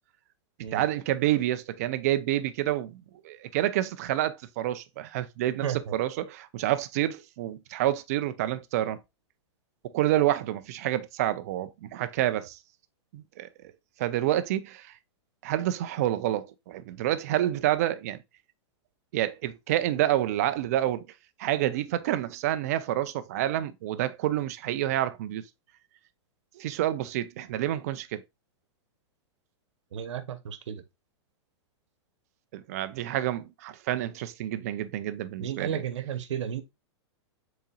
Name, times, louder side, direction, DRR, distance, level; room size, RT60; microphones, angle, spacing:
voice 1, 0.7-9.0 9.9-12.6 13.1-13.5 14.0-14.9 15.4-18.2 19.1-21.0 21.4-25.4 26.6-28.2 32.5-35.8, right 13 dB, 35° right, 0.4 m, -28 dB
voice 2, 5.6-6.0 29.9-30.8 35.4-36.6, right 9 dB, 80° right, 0.9 m, -33 dB
5.6 x 4.0 x 2.3 m
supercardioid pair, 175°, 15 cm